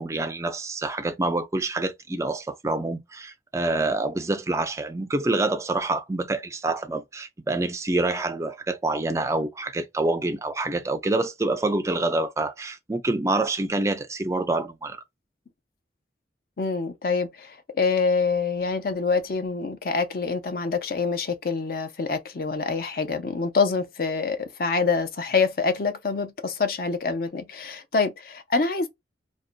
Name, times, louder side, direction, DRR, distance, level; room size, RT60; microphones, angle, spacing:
voice 1, 0.0-15.0, right 2 dB, 15° right, 0.3 m, -27 dB
voice 2, 16.6-28.9, left 4 dB, 50° left, 0.5 m, -26 dB
2.5 x 2.1 x 2.4 m
head